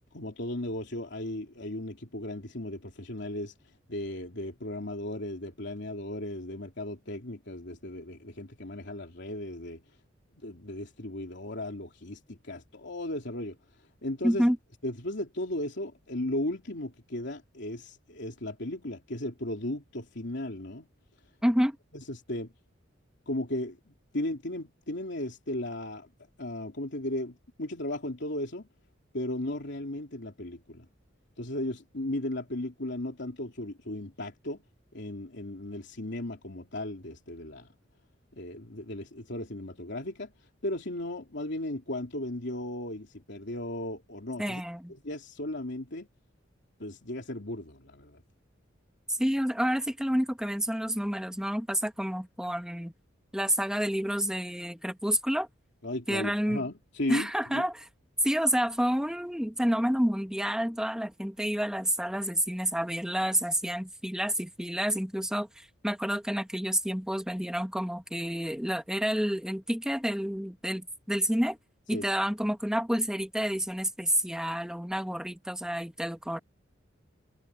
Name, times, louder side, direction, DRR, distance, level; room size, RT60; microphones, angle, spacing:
voice 1, 0.1-3.5 3.9-9.8 10.3-13.6 14.0-14.5 14.8-20.9 21.9-22.5 23.3-26.1 26.4-28.7 29.1-30.9 31.4-34.6 34.9-37.7 38.3-40.3 40.6-44.6 44.9-46.1 46.8-48.2 55.8-57.7 71.9-72.1, left 1 dB, 65° left, 3.3 m, -36 dB
voice 2, 14.2-14.6 21.4-21.8 44.4-44.9 49.2-52.9 53.3-55.5 56.1-56.6 57.1-57.8 58.2-71.6 71.9-76.4, equal, 5° right, 2.1 m, -29 dB
head